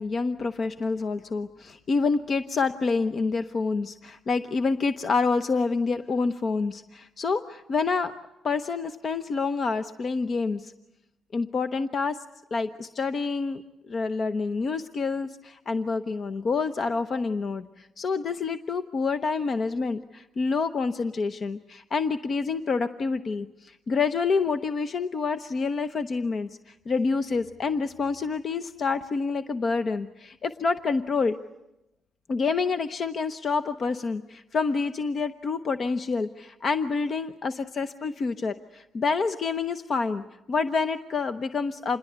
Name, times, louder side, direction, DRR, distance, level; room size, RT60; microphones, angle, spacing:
voice 1, 0.0-8.1 8.4-10.7 11.3-12.2 12.5-31.4 32.3-40.2 40.5-42.0, left 4 dB, 45° left, 9 dB, 0.9 m, -27 dB
27.5 x 21.0 x 8.1 m, 0.91 s
cardioid pair, 90°, 0 cm